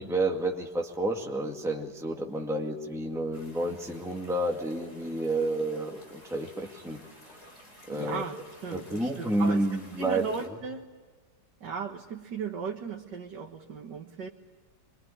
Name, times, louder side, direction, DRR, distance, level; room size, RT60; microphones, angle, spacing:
voice 1, 0.0-7.0 7.9-8.2 8.7-10.2, right 1 dB, ahead, 0 dB, 2.1 m, -30 dB
sound 1, 3.3-10.5, left 1 dB, 40° left, 5.5 m, -53 dB
voice 2, 7.9-8.4 8.6-9.7 10.0-10.9 11.6-14.3, right 5 dB, 85° right, 1 dB, 2.1 m, -36 dB
26.0 x 22.5 x 10.0 m, 1.3 s
omnidirectional pair, 1.8 m